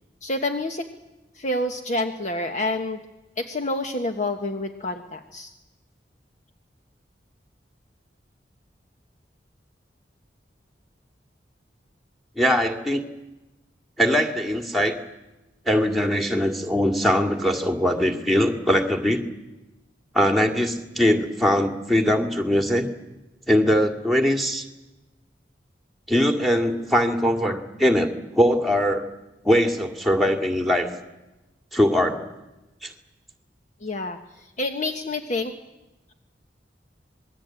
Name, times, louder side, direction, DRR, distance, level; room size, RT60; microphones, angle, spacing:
voice 1, 0.2-0.9 1.3-3.0 3.4-5.5 33.8-35.5, left 2 dB, 45° left, 6 dB, 1.4 m, -28 dB
voice 2, 12.4-13.0 14.0-15.0 15.7-19.2 20.1-22.9 23.5-24.7 26.1-29.0 29.4-30.9 31.7-32.2 32.8-32.9, equal, ahead, 5 dB, 2.2 m, -21 dB
26.5 x 21.0 x 9.0 m, 1.0 s
head